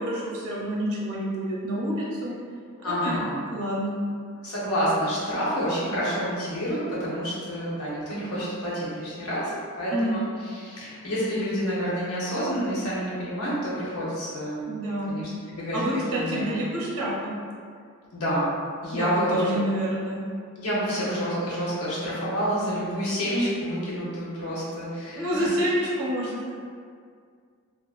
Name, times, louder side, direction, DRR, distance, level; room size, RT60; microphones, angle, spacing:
voice 1, 0.0-2.3 2.9-3.2 3.5-4.0 9.9-10.3 14.7-15.2 15.7-17.3 18.9-20.2 25.1-26.5, equal, 70° right, -5 dB, 0.6 m, -28 dB
voice 2, 2.8-3.4 4.4-14.7 15.1-15.8 16.1-16.6 18.1-18.5 18.8-19.6 20.6-25.5, equal, 90° left, -8 dB, 0.9 m, -28 dB
3.5 x 2.0 x 2.4 m, 2.2 s
head